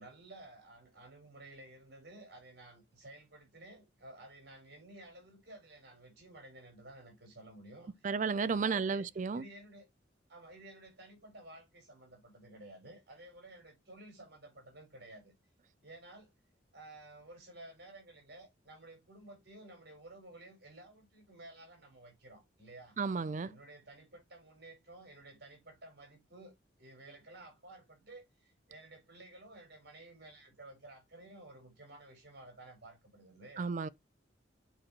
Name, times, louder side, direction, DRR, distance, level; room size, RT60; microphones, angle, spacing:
voice 1, 0.0-8.1 8.5-9.9 10.3-15.3 15.8-16.3 16.7-23.0 23.4-33.7, right 1 dB, 60° right, 4.2 m, -54 dB
voice 2, 8.0-9.4 23.0-23.5 33.6-33.9, right 5 dB, 40° right, 0.4 m, -33 dB
9.0 x 4.4 x 3.0 m
head